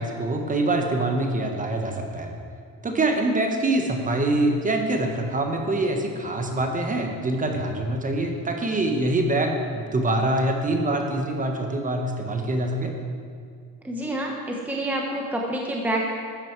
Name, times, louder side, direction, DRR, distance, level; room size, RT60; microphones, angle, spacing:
voice 1, 0.0-2.3 2.8-12.9, right 2 dB, 20° right, 3 dB, 1.4 m, -25 dB
voice 2, 13.8-16.0, right 1 dB, 5° right, -1 dB, 1.1 m, -27 dB
13.5 x 8.8 x 4.7 m, 2.2 s
cardioid pair, 130°, 37 cm